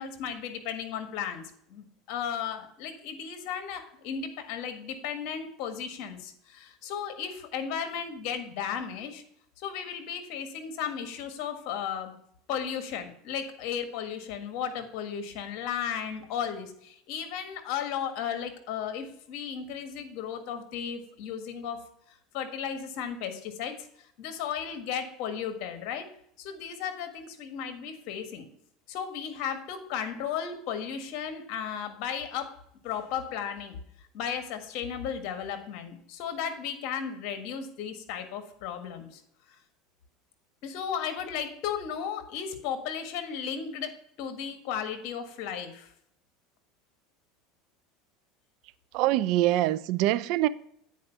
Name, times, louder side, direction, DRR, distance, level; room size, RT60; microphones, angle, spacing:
voice 1, 0.0-9.2 9.6-12.1 12.5-21.8 22.1-26.1 26.4-28.5 28.9-32.6 32.8-33.8 34.1-39.2 39.5-39.6 40.6-45.9, left 8 dB, 60° left, 1.6 m, -35 dB
voice 2, 48.9-50.5, right 15 dB, 65° right, 0.5 m, -24 dB
9.3 x 4.8 x 5.5 m
hypercardioid pair, 95°, 0 cm